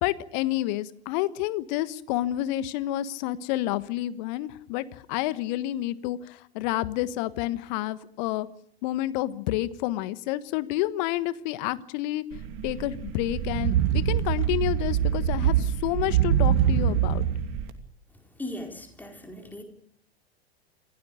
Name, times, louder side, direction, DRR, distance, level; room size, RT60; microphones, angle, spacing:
voice 1, 0.0-4.8 5.1-8.5 8.8-12.2 12.6-17.2, left 15 dB, 45° left, 1.4 m, -29 dB
sound 1, 12.3-17.7, right 10 dB, 45° right, 2.8 m, -24 dB
voice 2, 18.3-19.6, left 1 dB, 5° left, 4.5 m, -38 dB
27.5 x 17.0 x 6.7 m
figure-of-eight pair, 90°, 31 cm